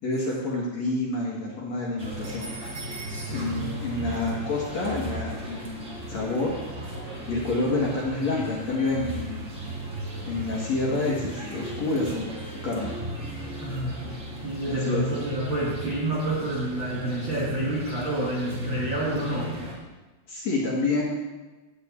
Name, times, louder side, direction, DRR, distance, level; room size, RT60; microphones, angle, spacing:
voice 1, 0.0-2.5 3.3-6.5 7.3-9.5 10.2-13.0 14.7-15.0 20.3-21.0, left 2 dB, 55° left, -4 dB, 2.2 m, -28 dB
sound 1, 2.0-19.7, equal, 45° right, 0.9 m, -36 dB
voice 2, 3.1-3.7 13.6-14.1 14.4-19.6, right 1 dB, 70° right, -5 dB, 1.1 m, -29 dB
12.0 x 4.4 x 8.2 m, 1.2 s
omnidirectional pair, 5.0 m